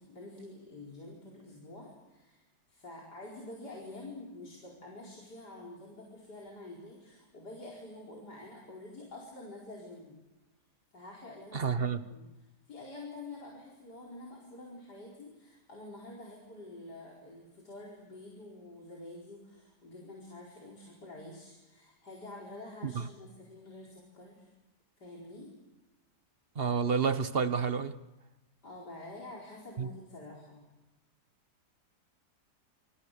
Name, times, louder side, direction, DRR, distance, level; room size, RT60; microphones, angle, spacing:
voice 1, 0.0-2.4 2.7-10.2 10.9-11.8 12.1-24.5 25.0-25.5 28.6-30.6, left 2 dB, 75° left, 5.3 m, -48 dB
voice 2, 11.5-12.0 22.8-23.0 26.6-27.9 29.8-29.9, right 6 dB, 40° right, 1.1 m, -29 dB
27.5 x 26.5 x 6.7 m
omnidirectional pair, 1.8 m